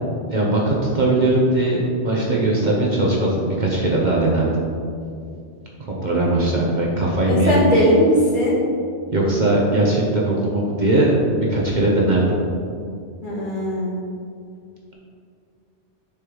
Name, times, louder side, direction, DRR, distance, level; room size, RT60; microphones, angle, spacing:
voice 1, 0.3-4.5 5.9-7.6 9.1-12.2, right 2 dB, 45° right, -3 dB, 0.8 m, -19 dB
voice 2, 7.3-8.6 13.2-13.9, equal, 45° left, -5 dB, 1.4 m, -19 dB
6.8 x 3.1 x 5.3 m, 2.4 s
omnidirectional pair, 1.2 m